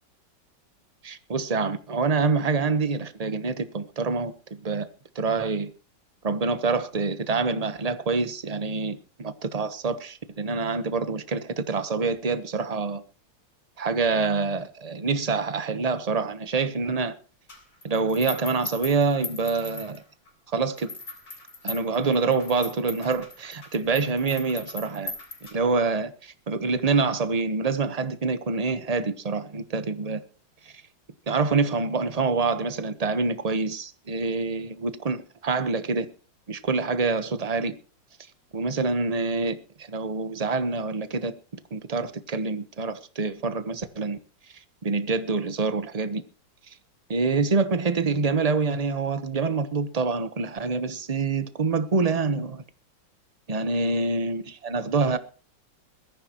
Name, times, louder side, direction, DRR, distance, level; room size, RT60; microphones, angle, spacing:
voice 1, 1.0-4.3 4.6-4.9 5.1-5.7 6.2-13.0 13.8-17.2 17.8-20.0 20.5-20.9 21.6-25.1 25.5-30.2 31.3-36.1 36.5-37.8 38.5-41.3 41.7-44.2 44.8-46.2 47.1-52.6 53.5-55.2, right 4 dB, 25° right, 0.9 m, -26 dB
sound 1, 17.5-20.3 20.8-25.9, left 2 dB, 45° left, 4.1 m, -39 dB
21.5 x 14.0 x 3.1 m
omnidirectional pair, 2.1 m